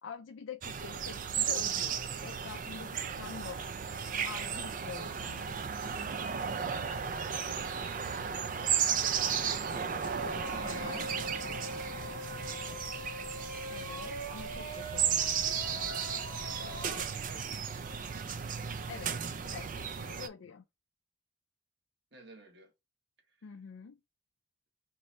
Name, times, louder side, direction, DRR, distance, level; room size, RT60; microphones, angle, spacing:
voice 1, 0.0-3.6 4.2-5.6 10.6-11.1 13.7-15.7 18.9-19.2 19.4-20.6 23.4-24.0, left 6 dB, 85° left, 0.4 m, -46 dB
sound 1, 0.6-20.3, right 7 dB, 40° right, 0.4 m, -34 dB
voice 2, 8.5-10.0 11.1-12.9 16.3-18.8 22.1-22.7 23.3-23.5, right 1 dB, 60° right, 1.3 m, -55 dB
sound 2, 10.0-17.0, equal, 75° right, 1.3 m, -43 dB
3.1 x 2.7 x 4.0 m
head